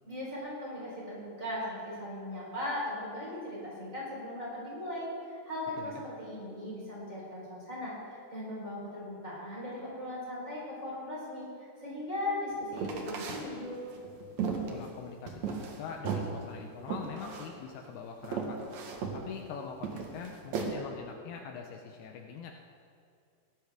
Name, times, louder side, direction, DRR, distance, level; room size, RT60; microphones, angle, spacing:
voice 1, 0.1-13.8, left 1 dB, 20° right, -6 dB, 3.8 m, -38 dB
sound 1, 12.7-13.4 13.9-16.3 16.9-17.5 17.9-18.0 18.2-19.2 19.8-20.7, right 6 dB, 65° right, 1.8 m, -35 dB
voice 2, 14.7-18.6 19.1-22.5, left 6 dB, 80° left, 3 dB, 2.5 m, -43 dB
17.5 x 12.0 x 3.6 m, 2.4 s
omnidirectional pair, 4.9 m